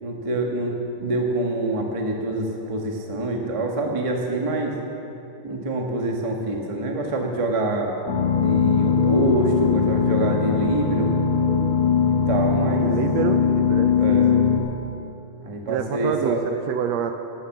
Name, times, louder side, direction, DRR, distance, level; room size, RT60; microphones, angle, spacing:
voice 1, 0.0-4.8 5.4-7.9 8.4-11.1 12.1-12.9 14.0-14.3 15.4-16.4, right 2 dB, 40° right, 0 dB, 0.4 m, -25 dB
sound 1, 8.1-14.6, left 6 dB, 65° left, 2.3 m, -20 dB
voice 2, 12.8-14.5 15.7-17.1, right 8 dB, 75° right, 7 dB, 1.6 m, -27 dB
12.0 x 11.5 x 7.2 m, 2.8 s
omnidirectional pair, 3.5 m